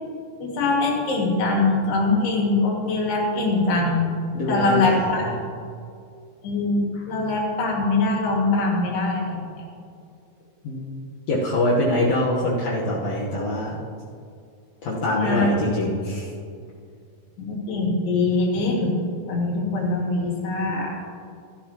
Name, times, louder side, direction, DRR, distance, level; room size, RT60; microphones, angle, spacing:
voice 1, 0.4-4.1 4.5-5.2 6.4-9.4 15.2-15.5 17.4-19.0 19.3-21.0, left 3 dB, 80° left, -2 dB, 4.2 m, -23 dB
voice 2, 4.3-5.5 10.6-13.8 14.8-16.3, left 1 dB, 65° left, -6 dB, 1.7 m, -24 dB
13.5 x 13.0 x 3.0 m, 2.3 s
omnidirectional pair, 4.6 m